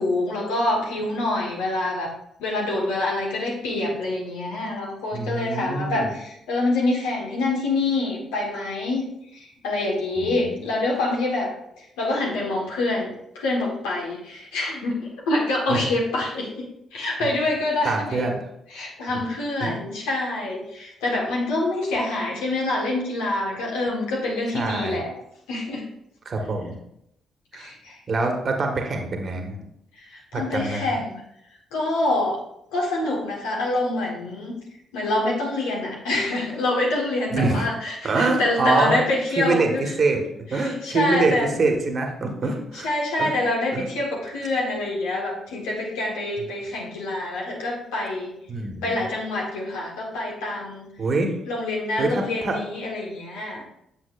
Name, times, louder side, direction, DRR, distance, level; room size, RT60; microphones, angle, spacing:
voice 1, 0.0-2.1 2.4-9.0 9.3-11.5 11.8-16.7 16.9-18.3 18.7-25.1 25.5-25.8 27.5-28.0 29.9-31.2 31.7-32.4 32.7-34.6 34.9-39.8 40.5-41.5 42.7-48.3 48.8-50.9 51.5-53.6, left 2 dB, 80° left, -2 dB, 1.4 m, -26 dB
voice 2, 5.1-6.1 10.2-10.7 15.7-15.8 17.2-17.3 17.8-18.4 19.6-19.8 24.5-25.0 26.2-26.8 27.5-27.7 28.1-29.6 30.3-30.9 37.3-37.7 38.0-39.0 39.4-40.2 40.5-42.9 43.2-43.3 43.7-43.9 48.5-49.0 51.0-51.3 52.0-52.6, right 3 dB, 50° right, 3 dB, 1.4 m, -24 dB
8.8 x 7.1 x 2.5 m, 0.78 s
hypercardioid pair, 45°, 0 cm